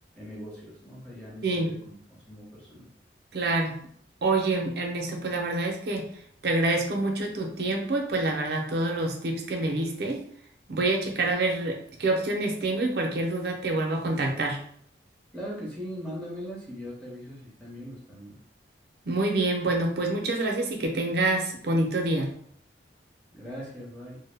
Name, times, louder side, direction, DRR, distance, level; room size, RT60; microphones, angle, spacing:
voice 1, 0.2-2.9 15.3-18.4 23.3-24.2, equal, 5° left, -6 dB, 0.8 m, -40 dB
voice 2, 3.3-3.7 4.2-6.1 6.4-10.2 10.7-14.6 19.1-22.3, right 2 dB, 60° right, 2 dB, 0.5 m, -27 dB
2.1 x 2.0 x 3.2 m, 0.63 s
head